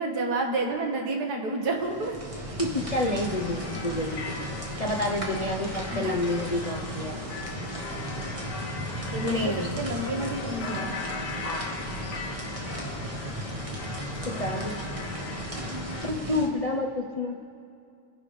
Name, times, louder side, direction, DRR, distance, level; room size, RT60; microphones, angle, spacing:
voice 1, 0.0-2.2 5.9-6.2 9.0-11.0 15.6-16.2, right 2 dB, 75° right, 1 dB, 2.0 m, -30 dB
sound 1, 1.7-16.5, right 1 dB, 20° right, 1.4 m, -36 dB
voice 2, 2.6-4.3 4.8-7.2 9.2-9.7 11.4-11.8 14.3-14.8 16.0-17.3, left 1 dB, 35° left, 0 dB, 0.6 m, -29 dB
sound 2, 2.8-16.1, left 4 dB, 85° left, 1.7 m, -39 dB
28.0 x 10.5 x 3.3 m, 2.4 s
omnidirectional pair, 1.7 m